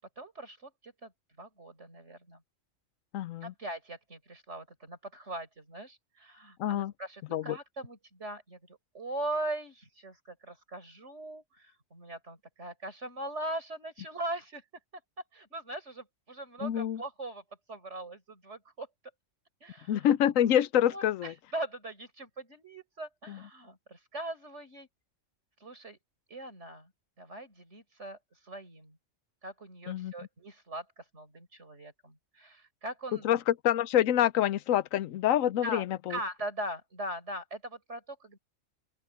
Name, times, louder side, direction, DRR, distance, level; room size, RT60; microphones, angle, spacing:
voice 1, 0.2-1.1 1.4-2.4 3.4-14.6 15.3-18.9 19.6-20.1 20.9-24.9 25.6-26.0 26.3-26.9 27.2-29.0 29.4-33.3 35.6-35.8 36.1-38.4, right 1 dB, 60° right, 5.3 m, -40 dB
voice 2, 3.1-3.5 6.6-6.9 7.3-7.6 16.6-17.0 19.9-21.3 23.3-23.4 29.9-30.1 33.2-36.2, left 11 dB, 80° left, 1.0 m, -27 dB
open air
omnidirectional pair, 1.3 m